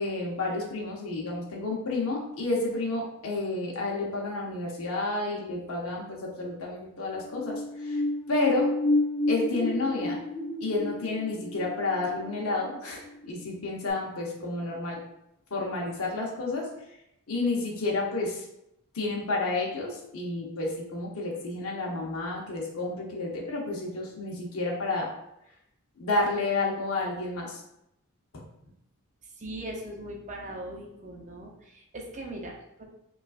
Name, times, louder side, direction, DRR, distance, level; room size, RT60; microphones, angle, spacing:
voice 1, 0.0-8.0 8.3-8.7 9.3-10.2 10.6-15.0 15.5-16.7 17.3-18.5 18.9-25.1 26.0-27.6 28.3-28.4, left 2 dB, 70° left, -2 dB, 0.8 m, -30 dB
sound 1, 7.2-13.5 13.9-14.0, left 2 dB, 5° left, 0.8 m, -30 dB
voice 2, 29.4-32.8, right 1 dB, 35° right, -1 dB, 0.6 m, -40 dB
5.1 x 2.4 x 2.4 m, 0.81 s
head